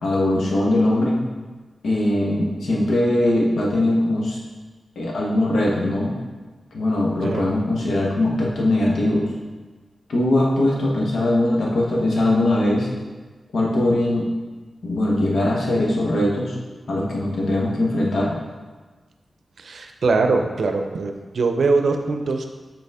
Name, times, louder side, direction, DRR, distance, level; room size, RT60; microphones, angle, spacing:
voice 1, 0.0-1.2 1.8-4.4 5.0-6.1 6.7-9.3 10.1-12.9 13.5-14.3 14.8-16.5 16.9-18.3, left 1 dB, 90° left, -3 dB, 1.2 m, -21 dB
voice 2, 7.2-7.5 19.6-22.5, right 3 dB, 75° right, 5 dB, 0.5 m, -22 dB
6.7 x 4.0 x 3.6 m, 1.3 s
wide cardioid pair, 110°, 0 cm